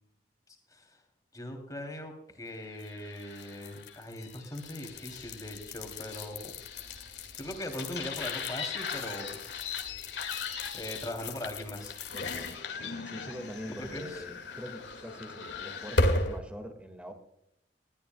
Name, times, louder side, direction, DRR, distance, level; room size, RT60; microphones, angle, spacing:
voice 1, 1.3-6.5 7.4-9.4 10.7-11.9 13.8-14.2, left 1 dB, 20° left, 3 dB, 3.0 m, -40 dB
sound 1, 2.7-16.4, left 3 dB, 85° left, 2.0 m, -36 dB
voice 2, 12.1-17.1, equal, 5° right, 7 dB, 1.8 m, -44 dB
20.5 x 13.0 x 2.3 m, 0.79 s
head